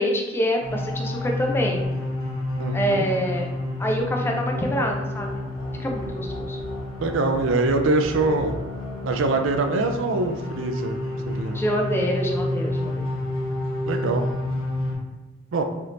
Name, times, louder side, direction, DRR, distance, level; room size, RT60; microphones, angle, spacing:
voice 1, 0.0-1.9 2.7-3.5 3.8-5.4 5.8-6.6 11.5-13.1, equal, 10° left, 1 dB, 0.3 m, -26 dB
sound 1, 0.6-14.9, left 1 dB, 70° left, 0.8 m, -29 dB
voice 2, 2.6-3.1 7.0-8.5 9.0-11.0 11.3-11.6 13.9-14.2 15.5-15.6, right 3 dB, 65° right, 5 dB, 0.4 m, -23 dB
3.4 x 2.8 x 2.5 m, 1.2 s
head